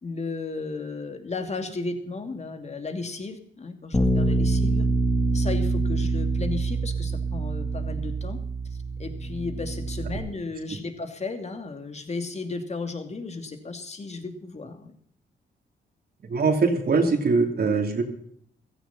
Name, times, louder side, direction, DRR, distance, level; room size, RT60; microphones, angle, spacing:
voice 1, 0.0-4.9 5.3-8.4 9.0-14.9, left 3 dB, 35° left, 6 dB, 2.7 m, -34 dB
Bass guitar, 3.9-10.2, right 2 dB, 20° left, 3.3 m, -25 dB
voice 2, 16.3-18.0, right 4 dB, 55° right, 2 dB, 3.3 m, -22 dB
15.5 x 14.5 x 4.2 m, 0.62 s
cardioid pair, 80°, 19 cm